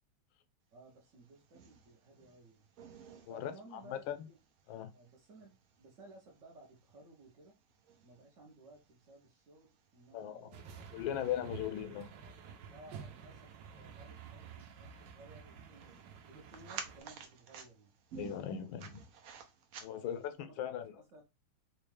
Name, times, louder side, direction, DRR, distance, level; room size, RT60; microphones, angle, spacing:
voice 1, 0.7-2.7 3.3-4.4 4.9-7.6 8.0-11.6 12.7-16.0 16.3-17.9 19.9-20.7 21.1-21.2, right 2 dB, 55° right, 0.9 m, -58 dB
sound 1, 0.9-20.4, right 6 dB, 85° right, 0.7 m, -55 dB
voice 2, 3.3-4.2 4.7-4.9 10.1-10.5 10.9-12.1 18.2-19.0 19.8-20.9, left 10 dB, 80° left, 1.3 m, -39 dB
sound 2, 10.5-17.0, right 6 dB, 70° right, 1.2 m, -51 dB
4.3 x 2.3 x 3.2 m
omnidirectional pair, 2.2 m